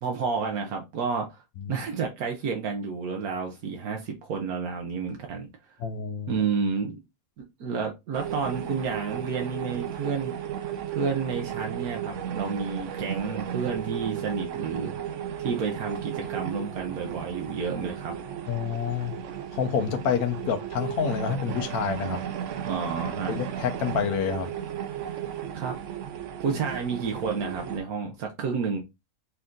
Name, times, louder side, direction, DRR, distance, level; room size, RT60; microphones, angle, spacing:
voice 1, 0.0-1.4 1.7-5.5 6.3-7.0 7.4-10.3 10.9-14.9 15.4-18.2 22.6-23.4 25.5-25.8 26.4-28.8, right 5 dB, 90° right, 1.4 m, -30 dB
voice 2, 5.8-6.4 18.5-19.2 19.5-22.2 23.3-24.5, left 7 dB, 90° left, 1.2 m, -28 dB
sound 1, 8.1-27.8, right 9 dB, 65° right, 0.9 m, -35 dB
5.4 x 2.6 x 3.7 m
omnidirectional pair, 1.5 m